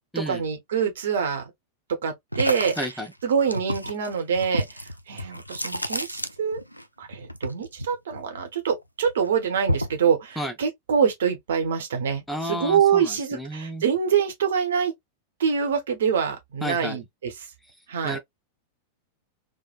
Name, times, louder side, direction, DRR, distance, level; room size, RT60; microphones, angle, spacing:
voice 1, 0.1-1.4 2.0-2.7 3.2-6.6 7.0-14.9 15.4-17.3 17.9-18.2, right 7 dB, 60° right, 0.9 m, -25 dB
sound 1, 2.3-6.8 7.1-8.7 9.1-10.1, equal, 90° left, 0.3 m, -30 dB
voice 2, 2.8-3.1 10.4-10.5 12.3-13.8 16.6-17.0 18.0-18.2, equal, 5° left, 0.5 m, -31 dB
3.2 x 2.1 x 2.3 m
figure-of-eight pair, 90°, 0 cm